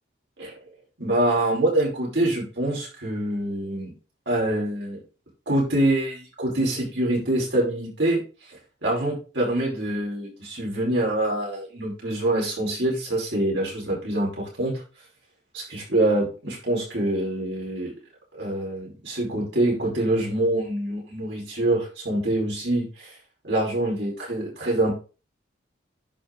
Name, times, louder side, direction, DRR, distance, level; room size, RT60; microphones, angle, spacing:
voice 1, 1.0-3.9 4.2-5.0 5.4-8.2 8.8-14.8 15.5-17.9 18.3-23.1 23.4-24.9, right 1 dB, 65° right, -3 dB, 5.1 m, -25 dB
11.0 x 5.2 x 4.0 m, 0.34 s
head